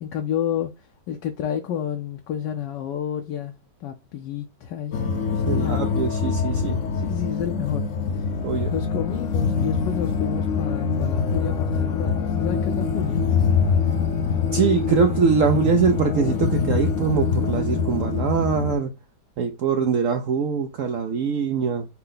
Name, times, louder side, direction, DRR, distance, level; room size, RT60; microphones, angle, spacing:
voice 1, 0.0-3.5 3.8-5.1 5.3-5.9 6.9-7.8 8.1-8.3 8.7-13.2, left 9 dB, 75° left, 1.3 m, -30 dB
sound 1, 4.9-18.8, left 5 dB, 60° left, 0.8 m, -24 dB
voice 2, 5.5-6.8 8.4-8.7 14.5-18.9 19.4-21.9, right 6 dB, 80° right, 0.7 m, -23 dB
5.6 x 2.1 x 3.8 m
omnidirectional pair, 2.0 m